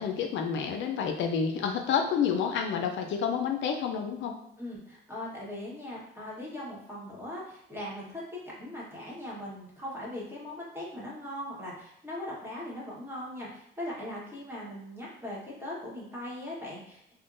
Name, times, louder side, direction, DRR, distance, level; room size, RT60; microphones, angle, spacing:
voice 1, 0.0-4.3, left 7 dB, 70° left, 4 dB, 0.4 m, -29 dB
voice 2, 4.6-17.1, left 1 dB, 10° right, -6 dB, 1.2 m, -40 dB
3.5 x 2.1 x 2.5 m, 0.73 s
cardioid pair, 90°, 20 cm